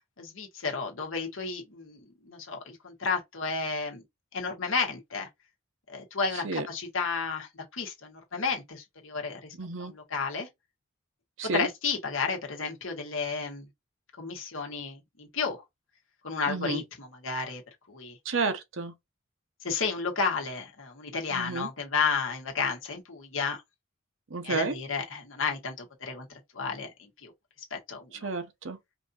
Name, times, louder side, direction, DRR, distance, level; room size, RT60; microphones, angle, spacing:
voice 1, 0.2-4.0 4.3-5.3 5.9-10.5 11.5-13.6 14.2-15.6 16.2-17.6 17.9-18.2 19.6-23.6 24.4-26.3 26.5-27.3 27.7-28.3, left 5 dB, 75° left, 1.5 m, -32 dB
voice 2, 9.6-9.9 11.4-11.7 16.5-16.8 18.3-18.9 21.3-21.7 24.3-24.7 28.2-28.8, right 3 dB, 65° right, 0.8 m, -31 dB
5.0 x 2.7 x 2.6 m
head